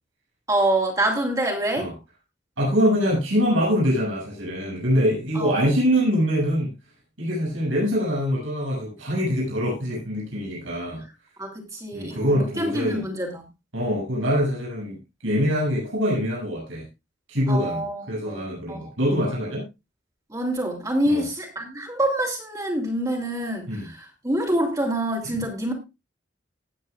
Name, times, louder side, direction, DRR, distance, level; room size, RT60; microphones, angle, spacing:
voice 1, 0.5-1.9 5.3-5.7 11.4-13.5 17.5-18.9 20.3-25.7, right 1 dB, 20° right, 0 dB, 3.0 m, -26 dB
voice 2, 2.6-6.7 7.2-11.0 11.9-13.0 13.7-16.9 17.3-19.6 21.1-21.2 23.7-23.9 25.3-25.4, equal, 90° right, -4 dB, 7.6 m, -24 dB
19.5 x 8.8 x 2.4 m, 0.25 s
head